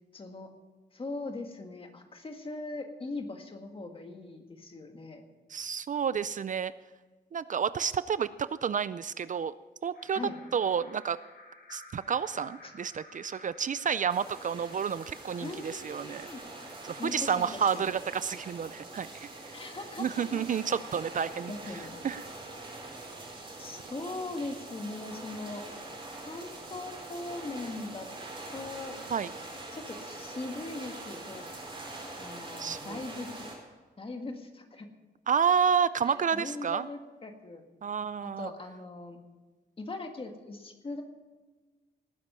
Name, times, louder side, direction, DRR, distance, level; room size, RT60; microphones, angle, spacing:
voice 1, 0.1-0.5 0.9-5.2 10.1-10.3 12.6-12.7 15.4-16.4 17.0-17.9 19.5-20.6 21.5-21.9 23.6-25.6 26.2-28.1 28.5-29.0 29.7-31.4 32.2-33.5 34.0-34.9 36.0-37.6 38.2-39.2 39.8-41.0, left 2 dB, 30° left, 4 dB, 1.7 m, -40 dB
voice 2, 5.5-6.7 7.3-9.5 9.8-10.2 10.5-11.2 11.7-16.3 16.8-19.3 20.0-21.5 22.0-22.2 29.1-29.3 32.6-33.0 35.3-36.9 37.8-38.5, right 7 dB, 50° right, 16 dB, 0.4 m, -30 dB
sound 1, 9.9-16.4, left 2 dB, 85° left, 5.9 m, -54 dB
sound 2, 14.1-33.5, right 2 dB, 30° right, 4.5 m, -44 dB
18.5 x 9.8 x 5.6 m, 1.3 s
wide cardioid pair, 145°, 17 cm